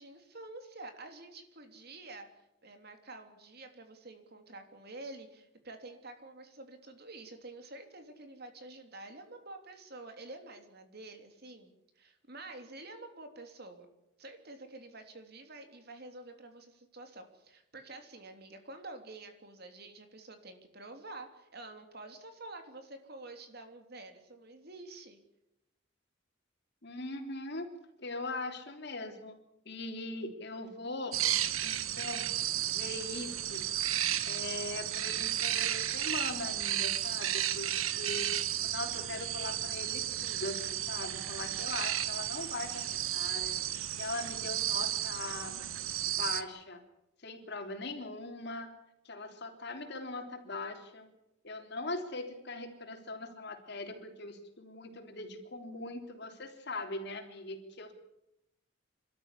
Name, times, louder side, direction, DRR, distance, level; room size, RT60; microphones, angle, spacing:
voice 1, 0.0-2.3 2.6-13.9 14.2-25.2, right 2 dB, 50° right, 6 dB, 3.3 m, -48 dB
voice 2, 26.8-27.7 28.0-29.4 29.7-31.2 31.6-32.3 32.7-33.7 34.3-38.3 38.6-43.6 44.0-45.6 46.1-46.8 47.2-48.7 49.1-51.1 51.4-57.9, left 2 dB, 55° left, 5 dB, 3.5 m, -41 dB
sound 1, 31.1-46.4, right 11 dB, 90° right, 1.3 m, -33 dB
27.5 x 13.5 x 9.9 m, 0.86 s
head